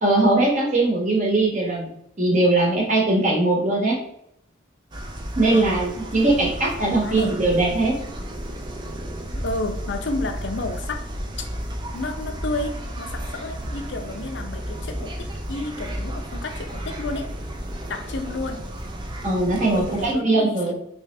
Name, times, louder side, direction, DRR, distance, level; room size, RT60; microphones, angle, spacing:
voice 1, 0.0-1.9 2.2-4.0 5.3-7.9 19.2-20.7, right 2 dB, 40° right, -2 dB, 1.1 m, -20 dB
sound 1, 4.9-20.1, equal, 25° right, 0.4 m, -33 dB
voice 2, 5.5-5.8 7.0-7.3 9.3-11.1 11.4-11.5 11.9-17.3 17.9-18.7 19.7-20.7, left 2 dB, 60° left, 5 dB, 0.5 m, -31 dB
3.4 x 2.9 x 3.3 m, 0.73 s
head